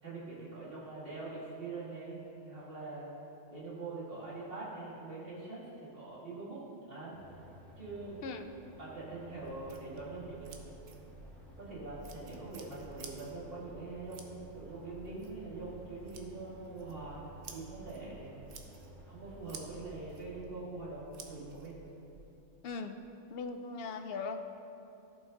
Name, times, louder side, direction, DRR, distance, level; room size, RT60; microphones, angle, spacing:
voice 1, 0.0-3.1 3.5-7.4 7.8-8.2 8.8-10.7 11.6-18.4 19.0-21.8, right 3 dB, 45° right, -7 dB, 2.5 m, -44 dB
sound 1, 7.1-20.4, equal, ahead, 1.1 m, -55 dB
sound 2, 9.4-22.4, right 4 dB, 80° right, 1.2 m, -53 dB
voice 2, 22.6-22.9 23.3-24.6, left 4 dB, 60° left, 7 dB, 0.7 m, -39 dB
13.0 x 5.8 x 3.8 m, 2.8 s
omnidirectional pair, 1.3 m